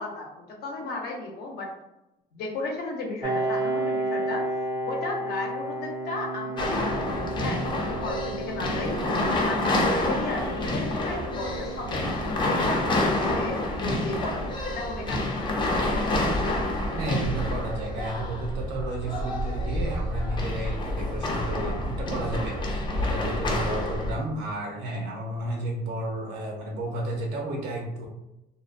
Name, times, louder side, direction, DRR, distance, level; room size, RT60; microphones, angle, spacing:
voice 1, 0.0-1.7 2.3-4.4 4.9-9.0 9.4-12.0 12.4-15.6, left 3 dB, 70° left, 0 dB, 0.7 m, -35 dB
Piano, 3.2-18.6, right 1 dB, 30° right, 0.4 m, -34 dB
sound 1, 6.6-24.1, left 1 dB, 30° left, 0.5 m, -28 dB
voice 2, 17.0-28.1, right 1 dB, 85° right, 1 dB, 0.7 m, -32 dB
2.6 x 2.0 x 2.5 m, 0.92 s
cardioid pair, 110°, 17 cm